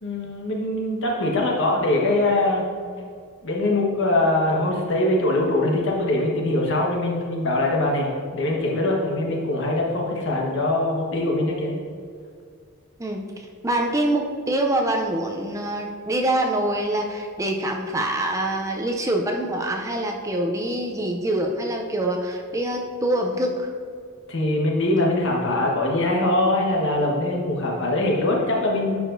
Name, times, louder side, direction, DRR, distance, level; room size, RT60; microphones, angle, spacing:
voice 1, 0.0-2.6 3.4-11.8 24.3-29.0, left 1 dB, 60° left, -1 dB, 1.2 m, -22 dB
voice 2, 13.0-23.7, right 1 dB, 15° right, 2 dB, 0.4 m, -25 dB
10.5 x 4.8 x 2.6 m, 2.1 s
head